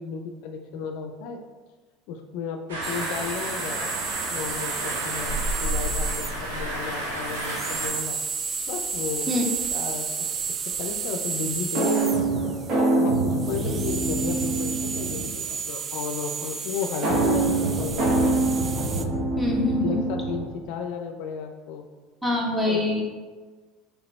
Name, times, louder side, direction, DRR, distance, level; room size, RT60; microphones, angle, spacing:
voice 1, 0.0-1.4 2.1-3.9 4.3-8.2 8.7-9.3 9.7-10.3 10.7-12.3 12.9-18.2 19.8-21.9 22.7-22.8, left 6 dB, 65° left, 5 dB, 0.4 m, -33 dB
sound 1, 2.7-7.9, right 1 dB, 85° right, 1.0 m, -30 dB
sound 2, 2.8-19.0, right 6 dB, 35° right, 0.3 m, -32 dB
sound 3, 11.7-15.5 17.0-20.6, right 2 dB, 55° right, 1.0 m, -25 dB
voice 2, 19.4-20.1 22.2-23.0, left 2 dB, 10° right, -1 dB, 1.0 m, -25 dB
3.5 x 2.9 x 4.1 m, 1.4 s
hypercardioid pair, 90°, 0 cm